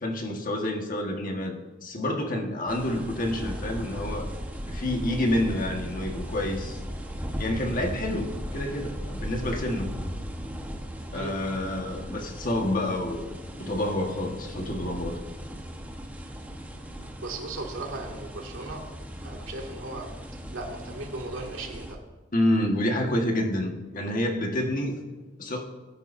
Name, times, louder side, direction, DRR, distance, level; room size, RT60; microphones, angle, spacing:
voice 1, 0.0-4.3 4.7-6.8 7.4-9.9 11.1-13.3 13.6-15.2 22.3-24.9 25.4-25.6, left 1 dB, 45° left, 2 dB, 1.6 m, -28 dB
sound 1, 2.7-21.9, equal, 10° right, 1.2 m, -37 dB
voice 2, 17.2-18.8 19.2-20.1 20.5-22.0, right 2 dB, 85° right, 0 dB, 2.3 m, -37 dB
20.0 x 10.5 x 2.7 m, 1.2 s
head